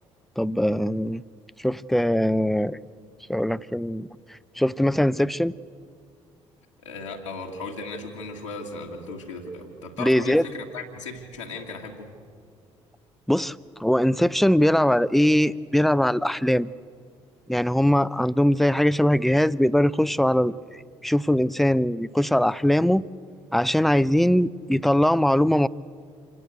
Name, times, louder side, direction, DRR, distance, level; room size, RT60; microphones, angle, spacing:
voice 1, 0.4-1.2 1.6-2.8 3.3-4.1 4.6-5.5 10.0-10.4 13.3-16.7 17.5-20.5 21.0-23.0 23.5-25.7, equal, ahead, 18 dB, 0.6 m, -21 dB
voice 2, 6.8-12.1, left 3 dB, 85° left, -2 dB, 2.1 m, -36 dB
27.0 x 17.5 x 8.2 m, 2.1 s
figure-of-eight pair, 45°, 15 cm